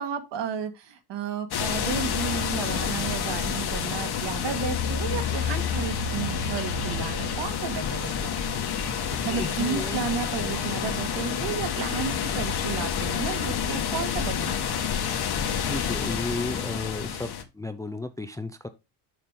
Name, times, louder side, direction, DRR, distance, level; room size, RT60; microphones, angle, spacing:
voice 1, 0.0-8.3 9.2-14.9, right 7 dB, 55° right, 7 dB, 1.9 m, -33 dB
sound 1, 1.5-17.4, left 7 dB, 50° left, 1.6 m, -28 dB
voice 2, 8.9-10.0 15.3-18.7, left 2 dB, 5° left, 9 dB, 0.5 m, -34 dB
6.9 x 6.0 x 3.6 m, 0.25 s
cardioid pair, 110°, 49 cm